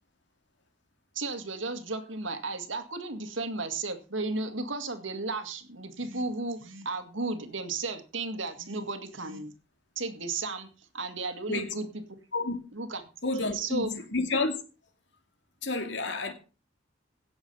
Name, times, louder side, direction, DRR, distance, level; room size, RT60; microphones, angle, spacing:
voice 1, 1.1-9.5 10.0-10.7 10.9-11.9 12.7-13.0 13.4-13.9, right 3 dB, 80° right, 2.1 m, -34 dB
voice 2, 13.2-14.5 15.6-16.3, left 3 dB, 65° left, 2.4 m, -30 dB
16.5 x 7.3 x 5.5 m
head